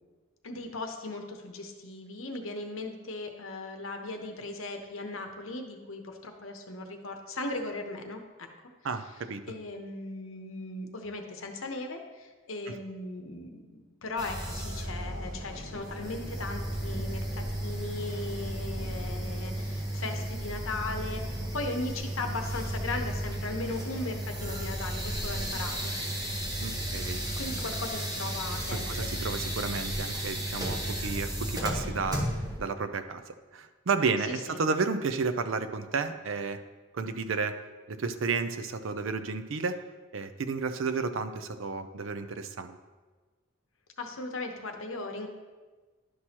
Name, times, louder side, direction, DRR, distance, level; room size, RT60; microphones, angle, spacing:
voice 1, 0.4-8.5 9.5-26.2 27.3-29.1 34.3-34.6 44.0-45.3, left 2 dB, 75° left, 4 dB, 0.9 m, -38 dB
voice 2, 8.8-9.4 12.7-12.8 26.6-27.2 28.7-32.3 32.6-36.6 36.9-37.6 37.9-39.8 40.1-42.8, right 4 dB, 65° right, 10 dB, 0.5 m, -32 dB
sound 1, 14.2-32.6, right 1 dB, 20° right, 1.2 m, -34 dB
11.0 x 6.1 x 2.9 m, 1.3 s
head